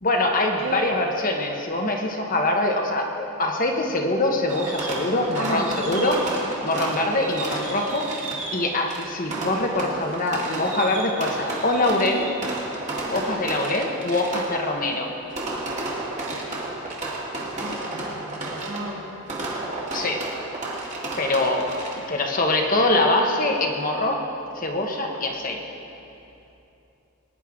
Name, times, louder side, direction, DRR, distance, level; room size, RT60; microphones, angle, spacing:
voice 1, 0.0-6.2 6.6-8.1 8.5-12.3 13.1-15.1 19.9-20.3 21.2-21.7 22.1-24.2 24.5-25.6, left 2 dB, 40° left, 2 dB, 1.1 m, -23 dB
voice 2, 0.6-0.9 5.4-5.7 17.3-19.0, right 1 dB, 70° right, -4 dB, 2.5 m, -33 dB
Fireworks, 4.5-22.2, right 2 dB, 35° right, 1.9 m, -32 dB
20.5 x 10.5 x 3.7 m, 2.8 s
head